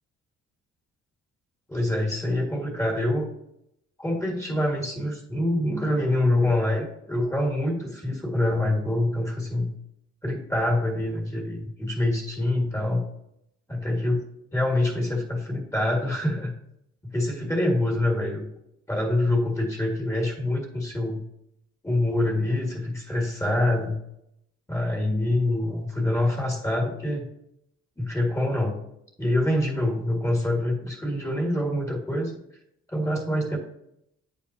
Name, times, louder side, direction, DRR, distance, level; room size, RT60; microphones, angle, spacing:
voice 1, 1.7-3.3 4.0-9.7 10.2-13.0 13.7-14.2 14.5-16.5 17.0-18.5 18.9-21.2 21.8-23.9 24.7-27.3 28.0-28.8 29.2-32.3 32.9-33.6, left 1 dB, 10° left, 0 dB, 1.8 m, -25 dB
8.5 x 5.3 x 2.7 m, 0.78 s
cardioid pair, 90°, 30 cm